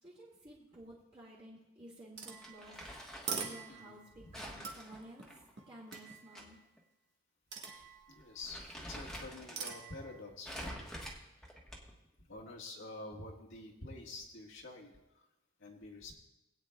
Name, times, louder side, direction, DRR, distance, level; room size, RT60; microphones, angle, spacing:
voice 1, 0.0-2.8 3.3-5.3 5.7-6.6, right 1 dB, 30° right, -8 dB, 2.2 m, -54 dB
sound 1, 2.2-4.2 4.6-6.5 7.5-8.4 9.6-10.2, right 5 dB, 55° right, 1.5 m, -44 dB
Crumpling crinkling, 2.4-3.4 4.3-6.4 6.8-6.9 7.7-7.8 8.2-9.8 10.4-12.1, equal, 5° left, 1.3 m, -47 dB
voice 2, 3.7-4.5 8.1-10.9 12.2-15.2 15.6-16.1, left 2 dB, 65° left, -2 dB, 1.6 m, -48 dB
20.0 x 9.2 x 2.3 m, 0.98 s
head